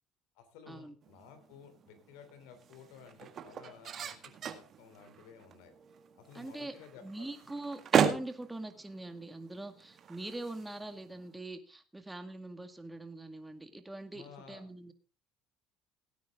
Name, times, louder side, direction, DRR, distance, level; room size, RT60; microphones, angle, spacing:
voice 1, 0.3-5.7 6.1-7.3 14.1-14.6, left 7 dB, 80° left, 8 dB, 3.3 m, -54 dB
sound 1, 1.0-11.4, right 7 dB, 50° right, 1.8 m, -37 dB
voice 2, 6.3-6.7 7.0-14.9, right 2 dB, 10° right, 8 dB, 2.0 m, -43 dB
17.0 x 9.3 x 3.7 m, 0.33 s
supercardioid pair, 85°, 0 cm